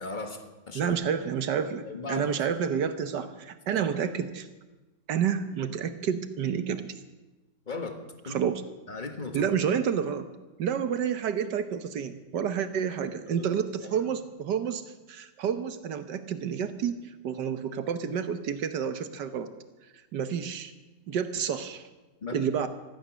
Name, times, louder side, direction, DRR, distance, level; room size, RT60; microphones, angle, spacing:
voice 1, 0.0-0.9 1.8-2.4 3.2-3.3 3.7-3.8 7.7-8.4 8.9-9.5 13.3-13.5 13.8-14.1 22.2-22.4, left 3 dB, 25° left, 5 dB, 1.6 m, -37 dB
voice 2, 0.7-4.5 5.1-6.9 8.3-8.6 9.3-10.3 10.6-14.8 15.1-17.0 17.2-19.5 20.1-20.7 21.1-21.9 22.3-22.7, right 7 dB, 70° right, 10 dB, 1.6 m, -29 dB
16.0 x 13.5 x 6.3 m, 1.1 s
omnidirectional pair, 2.0 m